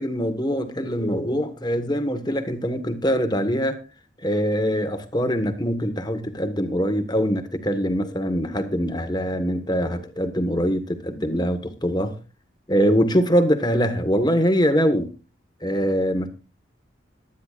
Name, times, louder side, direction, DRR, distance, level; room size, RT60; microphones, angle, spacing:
voice 1, 0.0-3.8 4.2-12.2 12.7-15.1 15.6-16.3, equal, 20° left, 8 dB, 1.4 m, -23 dB
22.5 x 10.0 x 2.5 m, 0.31 s
head